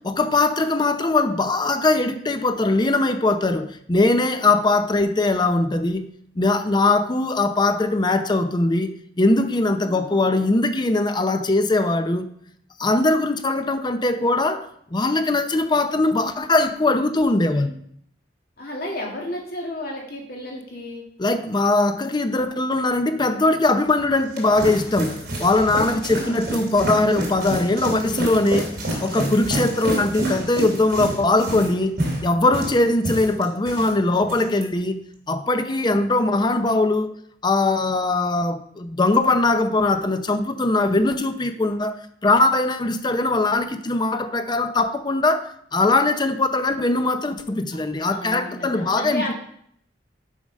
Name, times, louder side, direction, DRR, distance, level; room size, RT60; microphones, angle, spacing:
voice 1, 0.0-6.1 6.4-12.2 12.8-17.7 21.2-28.8 29.0-32.0 32.2-37.1 37.4-49.3, left 2 dB, 25° left, 0.6 m, -21 dB
voice 2, 9.8-10.4 18.6-21.0 25.8-26.5 47.7-47.8 48.1-49.3, left 1 dB, 55° left, 2.2 m, -33 dB
sound 1, 24.0-33.9 34.2-34.6, right 1 dB, 60° right, 2.8 m, -28 dB
7.3 x 5.1 x 5.2 m
head